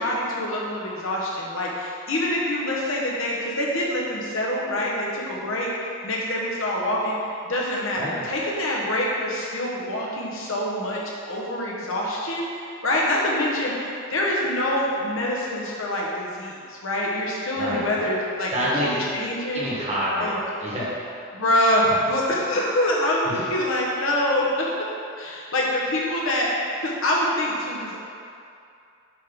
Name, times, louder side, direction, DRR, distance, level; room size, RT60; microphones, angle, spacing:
voice 1, 0.0-5.7 6.0-7.2 7.4-18.5 19.1-19.7 20.2-20.4 21.3-24.7 25.2-28.0, left 1 dB, 70° left, -4 dB, 1.2 m, -25 dB
voice 2, 17.6-18.1 18.5-19.0 19.5-20.3 20.6-20.9, equal, 30° right, -8 dB, 1.4 m, -27 dB
7.4 x 3.7 x 5.3 m, 2.5 s
head